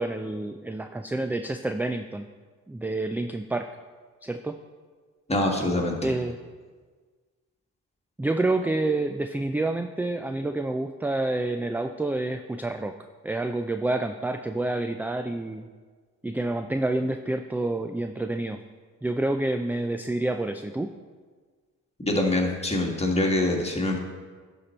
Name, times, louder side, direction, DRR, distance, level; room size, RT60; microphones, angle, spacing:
voice 1, 0.0-2.3 2.7-3.7 4.2-4.6 6.0-6.4 8.2-12.9 13.2-15.7 16.2-18.6 19.0-20.9, right 2 dB, 5° right, 7 dB, 0.3 m, -28 dB
voice 2, 5.3-6.1 22.0-24.0, left 1 dB, 15° left, 0 dB, 1.8 m, -24 dB
11.5 x 4.5 x 4.4 m, 1.5 s
supercardioid pair, 60°, 36 cm